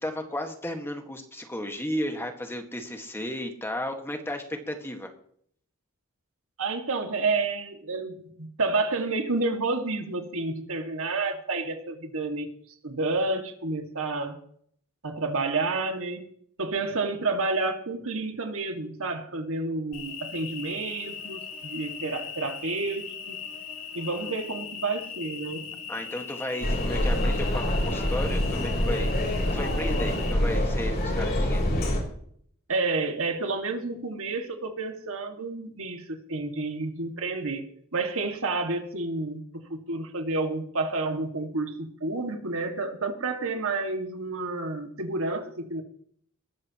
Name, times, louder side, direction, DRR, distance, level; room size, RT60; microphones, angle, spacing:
voice 1, 0.0-5.1 25.9-29.1 29.5-31.6, left 1 dB, 10° left, 4 dB, 1.7 m, -34 dB
voice 2, 6.6-12.5 12.8-14.4 15.0-16.3 16.6-23.4 23.9-25.7 32.7-37.6 37.9-39.4 39.7-45.8, right 3 dB, 65° right, 5 dB, 2.1 m, -30 dB
Cricket, 19.9-30.3, left 7 dB, 80° left, 3.3 m, -39 dB
sound 1, 26.6-32.0, left 1 dB, 45° left, 4.1 m, -26 dB
21.0 x 13.0 x 3.0 m, 0.63 s
head